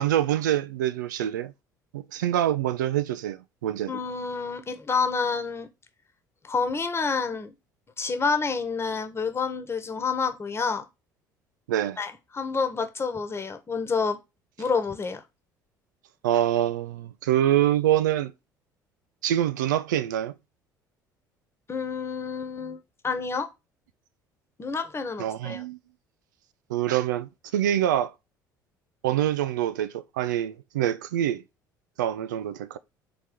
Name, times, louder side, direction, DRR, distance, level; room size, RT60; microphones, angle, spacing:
voice 1, 0.0-1.5 1.9-3.9 11.7-12.0 16.2-18.3 19.2-20.3 25.2-25.8 26.7-28.1 29.0-31.4 32.0-32.8, right 11 dB, 70° right, 0.5 m, -25 dB
voice 2, 3.9-5.7 6.4-7.5 8.0-10.8 12.0-14.2 14.6-15.2 21.7-23.5 24.6-25.6, left 5 dB, 25° left, 1.2 m, -28 dB
4.7 x 4.0 x 5.2 m
figure-of-eight pair, 55°, 10 cm